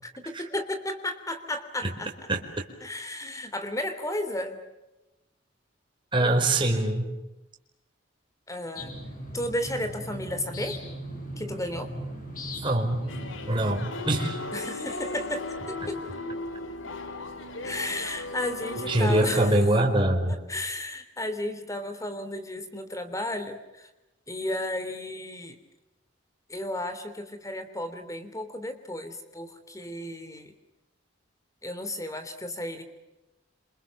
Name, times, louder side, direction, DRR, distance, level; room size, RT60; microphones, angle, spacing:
voice 1, 0.0-2.1 2.8-4.6 8.5-8.9 9.3-10.8 11.4-11.9 14.5-16.0 17.6-19.6 20.3-23.9 24.3-25.6 26.5-30.5 31.6-32.8, left 1 dB, 15° left, 9 dB, 3.3 m, -33 dB
voice 2, 6.1-7.1 12.6-13.1 13.5-14.4 15.8-15.9 18.9-20.4, right 1 dB, 25° right, 1 dB, 4.7 m, -23 dB
sound 1, 8.8-13.9, equal, 45° left, 6.9 m, -38 dB
sound 2, 13.1-19.5, left 2 dB, 85° left, 2.7 m, -36 dB
28.0 x 27.0 x 7.3 m, 0.98 s
head